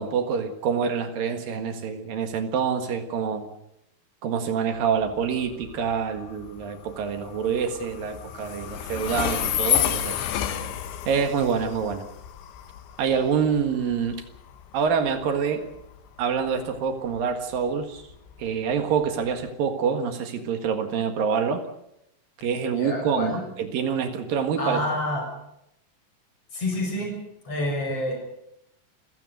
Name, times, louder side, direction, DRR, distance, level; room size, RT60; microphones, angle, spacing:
voice 1, 0.0-3.5 4.2-10.3 11.1-12.0 13.0-14.2 14.7-15.6 16.2-18.0 18.4-21.6 22.4-24.8, right 6 dB, 60° right, 6 dB, 3.1 m, -26 dB
Train, 4.8-19.5, left 11 dB, 90° left, 3.7 m, -32 dB
voice 2, 22.8-23.4 24.6-25.2 26.5-27.1 27.4-28.2, left 1 dB, 30° left, 2 dB, 7.8 m, -28 dB
28.0 x 16.5 x 6.5 m, 0.81 s
omnidirectional pair, 5.1 m